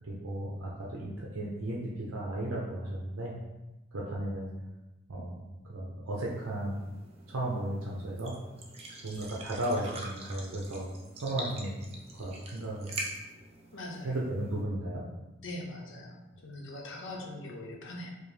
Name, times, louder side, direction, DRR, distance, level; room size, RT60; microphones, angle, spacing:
voice 1, 0.0-3.3 3.9-4.5 5.1-6.8 7.3-8.3 9.0-10.9 11.2-12.9 14.0-15.0, right 1 dB, 80° right, -4 dB, 0.6 m, -35 dB
sound 1, 6.1-14.6, right 2 dB, 30° right, 0.5 m, -45 dB
voice 2, 13.7-14.2 15.4-16.2 16.4-18.1, left 1 dB, 65° left, -1 dB, 0.7 m, -41 dB
5.0 x 2.0 x 3.2 m, 1.0 s
head